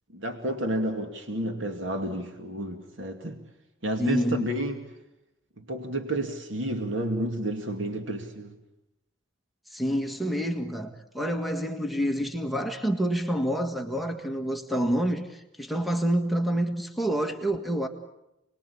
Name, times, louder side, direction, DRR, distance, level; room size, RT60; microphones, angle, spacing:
voice 1, 0.1-3.4 3.8-4.8 5.6-8.5, right 1 dB, 75° right, 2.4 m, -30 dB
voice 2, 4.0-4.6 9.7-17.9, right 1 dB, ahead, 1.7 m, -28 dB
29.5 x 21.0 x 8.6 m
head